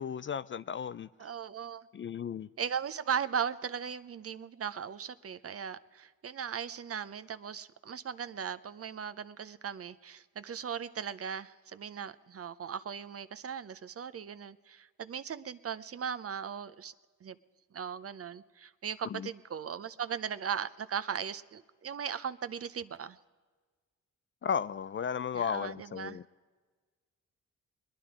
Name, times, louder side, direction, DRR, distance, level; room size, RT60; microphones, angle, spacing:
voice 1, 0.0-1.1 1.9-2.5 19.1-19.3 24.4-26.2, left 7 dB, 40° left, 0.4 m, -34 dB
voice 2, 1.2-1.9 2.6-16.9 17.2-17.4 17.7-23.2 25.3-26.2, right 7 dB, 45° right, 0.7 m, -38 dB
21.5 x 10.0 x 4.9 m
supercardioid pair, 55°, 33 cm